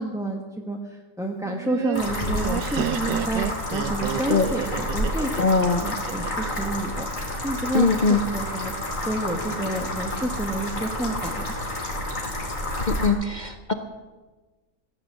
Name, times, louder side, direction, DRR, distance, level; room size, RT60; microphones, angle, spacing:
voice 1, 0.0-5.5 5.8-8.7 9.0-11.5, right 1 dB, 5° right, 0 dB, 0.7 m, -30 dB
Laughter, 1.4-6.5, right 12 dB, 80° right, 1.3 m, -30 dB
sound 1, 1.9-13.1, left 1 dB, 45° left, 3.0 m, -30 dB
voice 2, 5.4-5.8 7.7-8.2 12.8-13.7, left 4 dB, 70° left, 6 dB, 0.4 m, -21 dB
16.5 x 9.2 x 7.6 m, 1.3 s
omnidirectional pair, 1.9 m